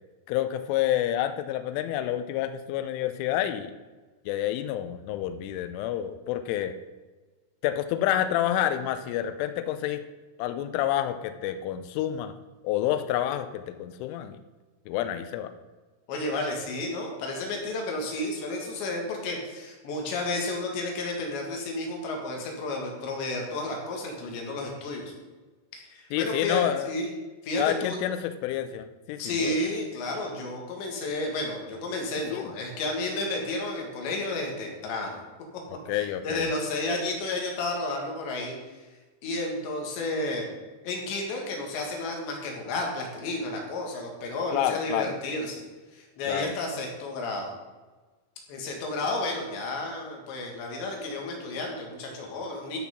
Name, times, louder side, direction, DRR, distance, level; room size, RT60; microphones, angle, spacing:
voice 1, 0.3-3.7 4.3-6.7 7.6-10.0 10.4-12.3 12.6-14.4 14.9-15.5 26.1-26.9 27.6-29.6 32.3-32.5 35.7-36.5 44.5-45.2 46.2-46.5, left 11 dB, 85° left, 9 dB, 3.2 m, -28 dB
voice 2, 16.1-25.1 25.7-27.1 27.4-28.0 29.2-35.2 35.9-38.6 39.2-40.5 40.8-45.6 45.9-47.5 48.5-52.8, left 2 dB, 70° left, 1 dB, 4.0 m, -32 dB
13.0 x 6.0 x 5.9 m, 1.3 s
omnidirectional pair, 5.6 m